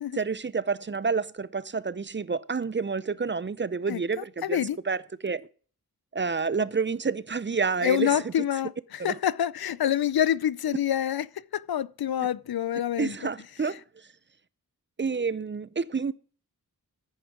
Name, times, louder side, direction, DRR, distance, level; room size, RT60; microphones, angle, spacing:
voice 1, 0.1-4.6 4.9-5.4 6.1-8.1 9.0-9.1 13.0-13.8 15.0-16.1, right 5 dB, 30° right, 0.5 m, -29 dB
voice 2, 3.9-4.8 7.8-11.3 11.5-13.2, left 10 dB, 75° left, 0.6 m, -27 dB
10.0 x 8.8 x 6.0 m
cardioid pair, 55°, 37 cm